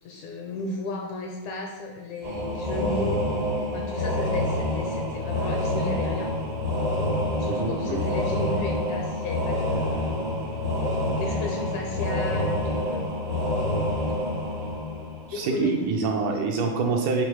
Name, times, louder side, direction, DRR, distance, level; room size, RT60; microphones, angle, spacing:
voice 1, 0.0-3.3 3.7-6.4 7.4-10.4 11.2-13.0 14.1-14.2 15.3-15.8, left 3 dB, 80° left, 1 dB, 1.9 m, -34 dB
sound 1, 2.2-15.7, left 1 dB, 40° right, 0.6 m, -27 dB
voice 2, 7.5-8.1 15.3-17.2, right 4 dB, 80° right, 1 dB, 2.0 m, -26 dB
8.4 x 3.7 x 4.7 m, 1.3 s
omnidirectional pair, 4.0 m